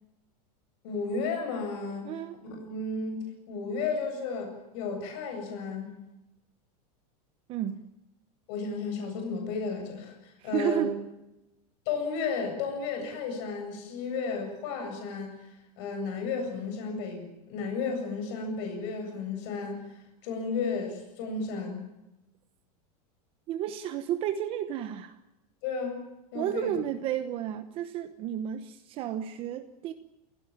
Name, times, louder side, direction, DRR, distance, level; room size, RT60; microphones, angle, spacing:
voice 1, 0.8-2.1 2.4-5.9 8.5-10.9 11.9-19.8 20.2-21.9 25.6-26.1 26.3-26.7, left 4 dB, 45° left, 4 dB, 7.8 m, -33 dB
voice 2, 2.0-2.4 7.5-7.8 10.4-11.0 23.5-25.2 26.3-29.9, right 11 dB, 30° right, 9 dB, 1.1 m, -32 dB
28.5 x 16.5 x 8.9 m, 0.93 s
supercardioid pair, 170°, 20 cm